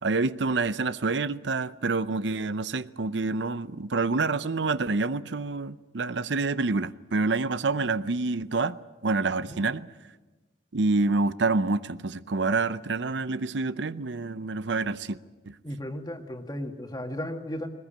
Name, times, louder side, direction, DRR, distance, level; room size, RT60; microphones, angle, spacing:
voice 1, 0.0-8.8 9.0-9.9 10.7-15.2 15.5-15.6, right 3 dB, 85° right, 0.7 m, -27 dB
voice 2, 15.6-17.7, left 1 dB, 20° left, 1.9 m, -35 dB
21.0 x 20.0 x 8.9 m
head